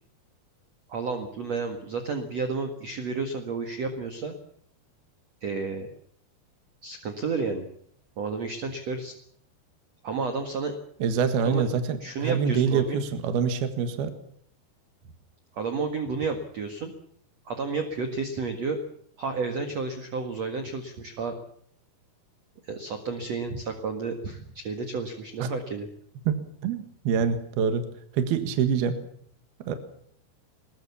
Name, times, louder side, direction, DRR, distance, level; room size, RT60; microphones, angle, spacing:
voice 1, 0.9-4.3 5.4-5.9 6.8-7.7 8.2-9.1 10.0-10.7 11.4-11.6 12.0-13.0 15.5-16.9 17.5-18.8 19.2-21.3 22.6-25.9, right 4 dB, 50° right, 6 dB, 2.4 m, -31 dB
voice 2, 11.0-14.1 25.4-25.5 26.3-27.9 28.1-29.0 29.7-29.8, right 6 dB, 70° right, 8 dB, 3.5 m, -25 dB
23.0 x 20.5 x 7.1 m, 0.65 s
omnidirectional pair, 4.8 m